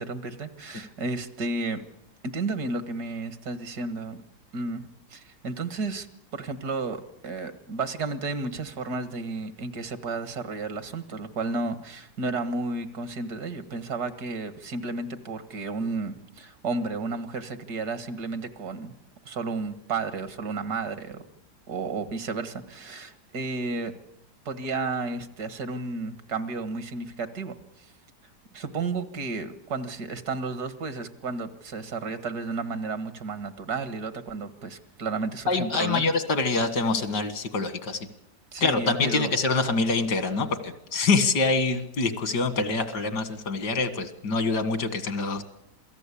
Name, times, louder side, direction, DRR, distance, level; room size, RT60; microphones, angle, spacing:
voice 1, 0.0-1.8 2.2-4.2 4.5-6.1 6.3-18.9 19.3-21.2 21.7-23.9 24.5-27.9 28.5-36.1 38.5-39.4, right 3 dB, 70° right, 11 dB, 2.2 m, -32 dB
voice 2, 35.5-38.1 38.6-45.4, left 3 dB, 85° left, 11 dB, 2.4 m, -25 dB
27.5 x 18.0 x 8.5 m, 0.79 s
omnidirectional pair, 1.8 m